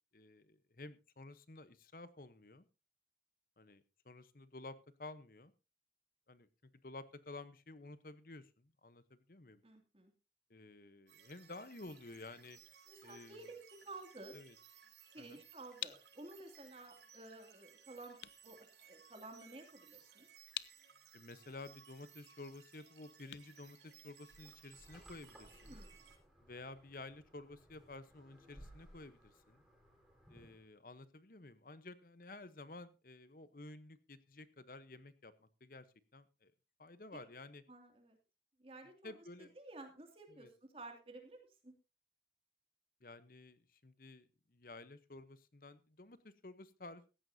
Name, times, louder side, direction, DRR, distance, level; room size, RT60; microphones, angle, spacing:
voice 1, 0.1-2.6 3.6-5.5 6.3-6.5 6.8-9.6 10.5-12.6 13.0-13.4 14.3-14.5 15.2-15.4 21.1-25.8 26.4-29.6 30.3-35.8 36.1-36.5 36.8-37.6 39.0-39.5 40.3-40.5 43.0-47.1, left 2 dB, 50° left, 13 dB, 1.0 m, -52 dB
voice 2, 9.6-10.1 12.9-14.4 15.1-20.3 25.6-26.0 37.1-37.3 37.7-38.2 38.6-41.4 41.6-41.7, right 2 dB, 35° right, 4 dB, 2.7 m, -53 dB
sound 1, 11.1-26.2, right 8 dB, 85° right, 4.5 m, -62 dB
sound 2, 15.8-24.6, left 13 dB, 80° left, 0.6 m, -52 dB
sound 3, 24.3-30.7, equal, ahead, 4.4 m, -61 dB
15.5 x 14.0 x 2.8 m, 0.30 s
head